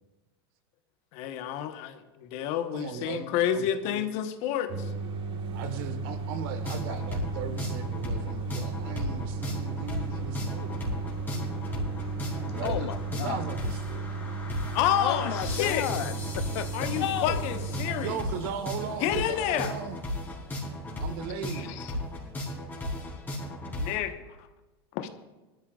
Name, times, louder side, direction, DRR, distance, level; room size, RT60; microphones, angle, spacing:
voice 1, 1.1-4.9 14.7-15.9 16.7-18.2 19.0-19.7 21.6-21.9 23.8-24.2 24.9-25.1, left 10 dB, 55° left, 8 dB, 1.2 m, -29 dB
voice 2, 2.7-3.3 3.5-4.0 5.5-10.8 12.5-12.9 13.2-14.1 18.0-20.0 21.0-21.7, right 7 dB, 65° right, 9 dB, 1.4 m, -37 dB
sound 1, 4.7-18.1, right 4 dB, 40° right, 1.5 m, -35 dB
sound 2, 6.6-24.0, left 1 dB, 15° left, 4.2 m, -35 dB
voice 3, 12.6-13.4 15.0-17.5, left 12 dB, 85° left, 14 dB, 0.6 m, -33 dB
20.5 x 13.0 x 2.4 m, 1.1 s
supercardioid pair, 120°, 13 cm